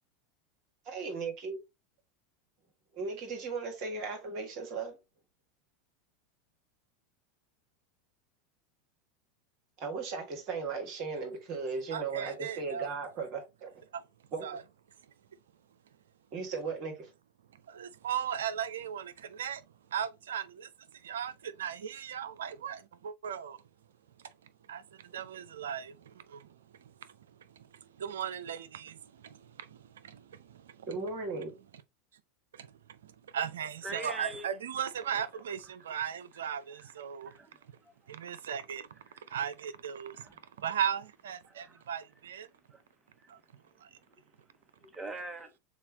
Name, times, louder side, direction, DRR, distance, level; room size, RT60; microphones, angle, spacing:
voice 1, 0.8-1.5 2.9-5.0 9.8-13.7 14.3-14.6 16.3-17.1 30.9-31.5, right 4 dB, 55° right, 1.6 m, -36 dB
voice 2, 11.9-12.9 13.9-14.0 14.4-14.6 17.7-19.6 19.9-20.7 21.0-23.6 24.7-26.5 28.0-30.9 32.5-32.7 33.0-37.3 38.1-38.9 39.3-40.3 40.6-42.5 43.3-43.4 43.8-43.9, right 8 dB, 80° right, 0.4 m, -37 dB
voice 3, 33.8-34.5 35.1-35.4 35.8-36.0 36.7-36.9 37.2-37.9 39.1-39.4 40.2-40.4 41.5-41.8 42.7-42.8 43.2-43.3 44.8-45.5, right 2 dB, 15° right, 1.0 m, -45 dB
6.9 x 2.4 x 2.8 m
hypercardioid pair, 90°, 0 cm